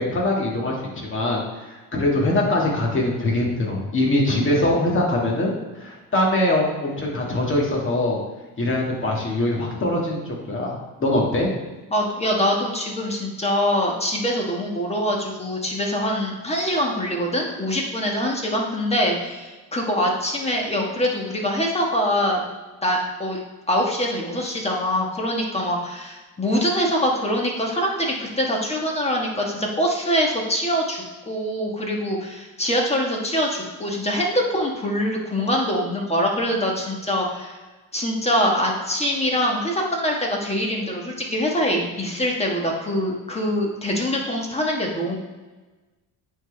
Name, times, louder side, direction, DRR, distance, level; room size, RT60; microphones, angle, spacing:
voice 1, 0.0-8.2 8.6-11.5, left 1 dB, 30° left, -2 dB, 1.8 m, -23 dB
voice 2, 11.9-22.4 22.8-23.4 23.7-37.6 37.9-45.1, equal, 15° left, 0 dB, 1.3 m, -24 dB
8.8 x 4.0 x 3.3 m, 1.2 s
cardioid pair, 110°, 38 cm